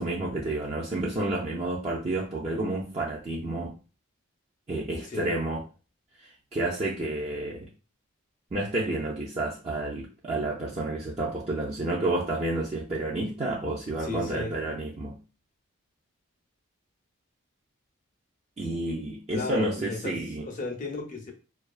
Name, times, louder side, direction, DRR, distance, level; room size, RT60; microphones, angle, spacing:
voice 1, 0.0-3.7 4.7-5.6 6.2-7.7 8.5-15.2 18.6-20.5, right 2 dB, 30° right, -5 dB, 0.4 m, -30 dB
voice 2, 14.0-14.5 19.3-21.3, left 3 dB, 35° left, 3 dB, 0.5 m, -34 dB
2.3 x 2.3 x 2.4 m, 0.33 s
head